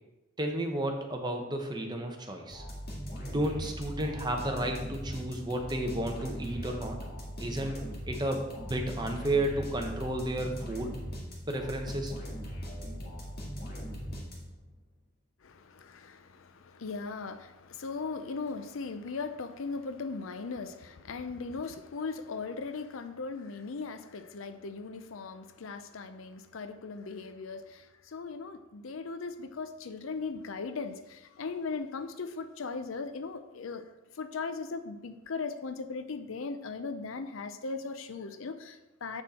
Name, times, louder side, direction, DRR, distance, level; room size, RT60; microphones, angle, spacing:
voice 1, 0.4-2.6 3.2-7.0 7.4-7.8 8.1-10.9 11.5-12.1, right 1 dB, 20° right, 3 dB, 0.9 m, -32 dB
sound 1, 2.5-14.7, equal, 50° left, 1.9 m, -40 dB
voice 2, 15.4-33.9 34.1-39.2, left 4 dB, 75° left, 10 dB, 0.6 m, -38 dB
7.8 x 6.2 x 4.2 m, 1.0 s
head